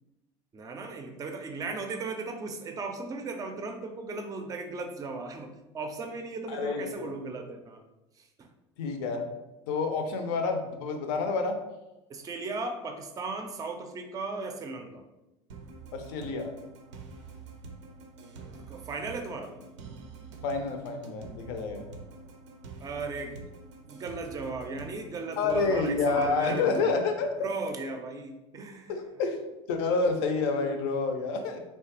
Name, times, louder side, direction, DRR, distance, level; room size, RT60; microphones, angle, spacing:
voice 1, 0.5-7.8 8.4-8.5 12.1-15.0 18.2-19.6 22.8-23.4 23.9-27.0 27.4-28.9, right 3 dB, 25° right, 5 dB, 0.4 m, -37 dB
voice 2, 6.5-7.1 8.8-9.3 9.7-11.6 15.9-16.5 20.4-21.9 25.4-27.3 28.9-29.4 29.7-31.6, left 4 dB, 65° left, 5 dB, 0.5 m, -28 dB
sound 1, 15.5-26.9, right 4 dB, 85° right, 0.4 m, -46 dB
3.0 x 2.3 x 2.8 m, 0.98 s
hypercardioid pair, 85°, 15 cm